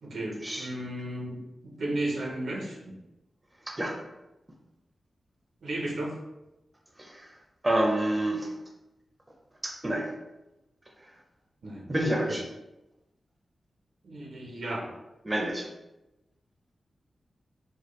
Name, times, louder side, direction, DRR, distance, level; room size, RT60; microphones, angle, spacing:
voice 1, 0.0-3.0 5.6-6.2 11.6-11.9 12.3-12.4 14.0-14.9, right 1 dB, 80° right, -1 dB, 0.8 m, -34 dB
voice 2, 7.6-8.5 9.6-10.1 11.9-12.4 15.2-15.7, right 1 dB, 20° right, 0 dB, 0.5 m, -28 dB
4.3 x 2.3 x 3.1 m, 0.99 s
wide cardioid pair, 115°, 0 cm